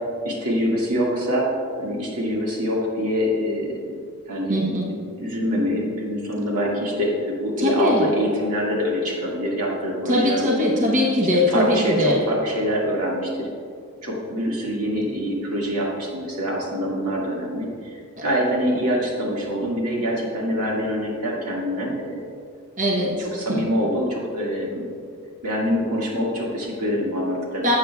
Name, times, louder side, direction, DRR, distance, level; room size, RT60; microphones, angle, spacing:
voice 1, 0.2-1.5 1.8-3.9 4.3-10.5 11.5-13.5 14.0-22.2 22.9-24.8 25.4-27.7, equal, 90° right, -3 dB, 2.0 m, -25 dB
voice 2, 4.5-4.9 7.6-8.1 10.1-12.2 22.8-23.1 23.5-23.6 27.6-27.8, left 1 dB, 35° right, -2 dB, 1.0 m, -20 dB
12.5 x 8.0 x 2.4 m, 2.2 s
head